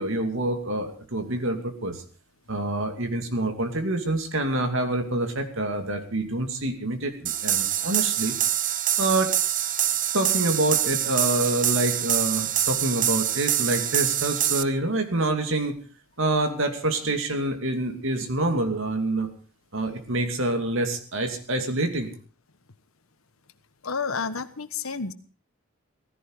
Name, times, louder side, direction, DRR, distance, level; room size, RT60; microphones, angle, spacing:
voice 1, 0.0-2.0 2.5-8.3 9.0-9.3 10.1-15.8 16.2-19.3 19.7-22.1, right 2 dB, 65° right, 6 dB, 2.7 m, -26 dB
sound 1, 7.3-14.6, right 11 dB, 40° right, 0.8 m, -25 dB
voice 2, 23.8-25.1, left 5 dB, 80° left, 11 dB, 1.3 m, -30 dB
16.5 x 15.5 x 4.8 m, 0.41 s
head